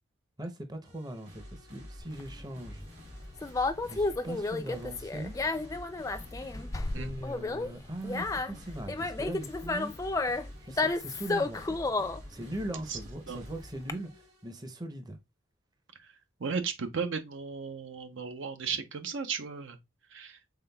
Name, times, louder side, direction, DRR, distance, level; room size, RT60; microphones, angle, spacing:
voice 1, 0.4-2.9 3.9-5.3 6.9-9.9 10.6-11.8 12.3-15.2, right 1 dB, 20° right, 0.6 m, -40 dB
sound 1, 0.8-14.6, equal, 60° right, 2.1 m, -49 dB
Conversation, 2.0-13.9, left 3 dB, 15° left, 0.3 m, -32 dB
voice 2, 16.4-19.8 20.1-20.4, right 5 dB, 75° right, 0.6 m, -35 dB
5.6 x 3.7 x 2.2 m
head